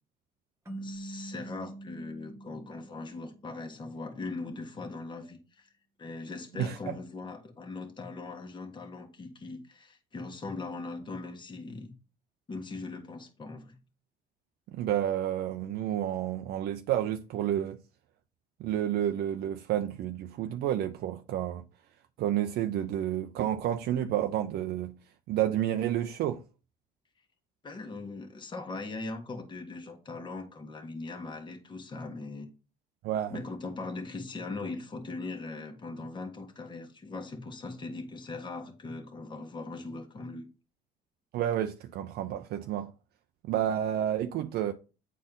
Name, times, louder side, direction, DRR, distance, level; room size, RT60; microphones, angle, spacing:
sound 1, 0.7-3.8, right 2 dB, 15° right, 1.4 m, -44 dB
voice 1, 0.8-5.7 6.0-11.9 12.5-13.8 27.6-32.5 33.3-40.5, left 3 dB, 30° left, 1.4 m, -40 dB
voice 2, 14.7-17.8 18.6-21.6 22.2-24.9 25.3-26.4 33.0-33.3 41.3-42.9 43.4-44.7, right 11 dB, 70° right, 0.5 m, -30 dB
9.2 x 4.2 x 3.8 m
cardioid pair, 110°, 17 cm